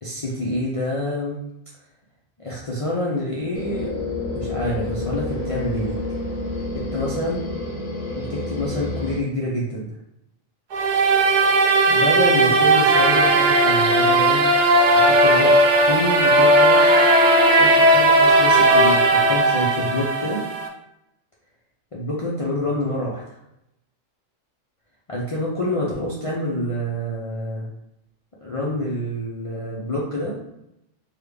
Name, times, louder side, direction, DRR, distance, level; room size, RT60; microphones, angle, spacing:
voice 1, 0.0-1.4 2.4-3.9 4.3-6.0 6.7-7.5 8.2-9.9 11.9-14.5 15.0-16.8 17.6-20.5 21.9-23.4 25.1-27.7 28.4-30.6, left 1 dB, 55° left, -5 dB, 0.3 m, -27 dB
sound 1, 3.5-9.2, left 2 dB, 85° left, 1.2 m, -29 dB
sound 2, 10.7-20.7, right 1 dB, 80° right, 0.4 m, -16 dB
3.4 x 2.3 x 3.3 m, 0.83 s
omnidirectional pair, 1.4 m